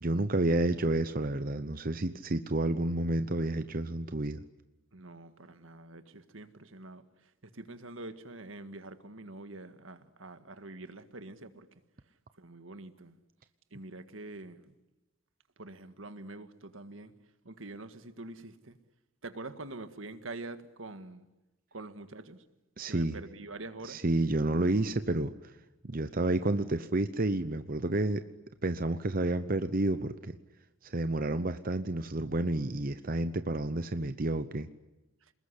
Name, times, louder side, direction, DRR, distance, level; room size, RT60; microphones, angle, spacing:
voice 1, 0.0-4.4 22.8-23.2 23.8-25.5 25.8-28.2 28.6-30.4 30.8-34.7, right 2 dB, 45° right, 0.9 m, -30 dB
voice 2, 4.9-7.0 7.5-11.7 12.4-13.2 13.7-14.8 15.6-17.1 17.5-18.8 19.2-21.3 21.7-22.4 22.9-24.0, right 2 dB, 80° right, 1.8 m, -45 dB
28.0 x 20.5 x 9.9 m
head